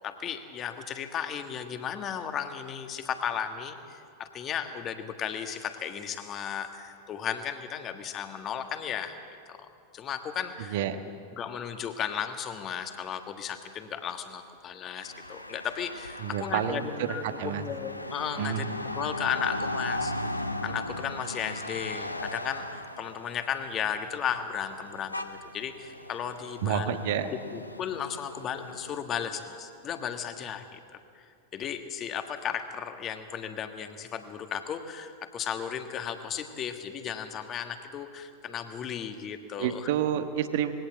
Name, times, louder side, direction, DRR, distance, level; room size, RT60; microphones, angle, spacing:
voice 1, 0.0-9.1 9.5-9.7 9.9-10.8 11.3-20.1 20.6-30.8 31.1-31.2 31.5-39.9, left 8 dB, 30° left, 7 dB, 1.6 m, -35 dB
sound 1, 15.0-29.0, left 1 dB, 85° left, 0.9 m, -38 dB
voice 2, 16.2-17.6 18.4-18.6 26.6-27.3 39.6-40.7, right 9 dB, 50° right, 8 dB, 1.3 m, -29 dB
20.5 x 17.5 x 7.6 m, 2.4 s
figure-of-eight pair, 90°, 0 cm